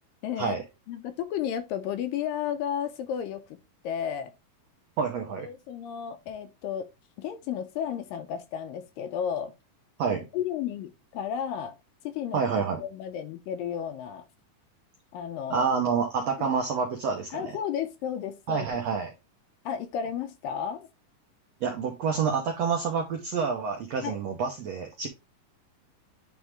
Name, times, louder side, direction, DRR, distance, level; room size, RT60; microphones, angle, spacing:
voice 1, 0.2-0.6 0.9-3.4 3.8-4.3 5.4-6.9 7.2-9.5 10.3-11.8 12.0-12.4 12.8-14.3 15.1-15.7 16.4-16.5 17.3-18.7 19.7-20.9 24.0-24.2, left 9 dB, 80° left, 2.2 m, -33 dB
voice 2, 5.0-5.5 10.0-10.3 12.3-12.8 15.5-17.5 18.5-19.1 21.6-25.1, right 5 dB, 80° right, 1.5 m, -28 dB
9.2 x 3.6 x 3.2 m
omnidirectional pair, 4.3 m